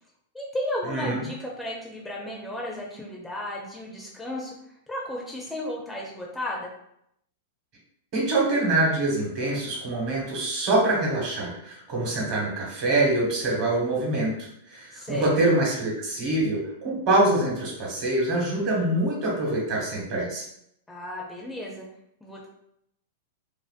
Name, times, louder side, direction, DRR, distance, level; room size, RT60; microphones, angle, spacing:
voice 1, 0.3-4.5 4.9-6.7 14.9-15.3 20.9-21.9 22.2-22.5, left 1 dB, 5° left, -3 dB, 0.4 m, -34 dB
voice 2, 0.9-1.2 8.1-20.4, right 2 dB, 45° right, -2 dB, 1.1 m, -25 dB
2.5 x 2.1 x 2.4 m, 0.74 s
hypercardioid pair, 125°, 0 cm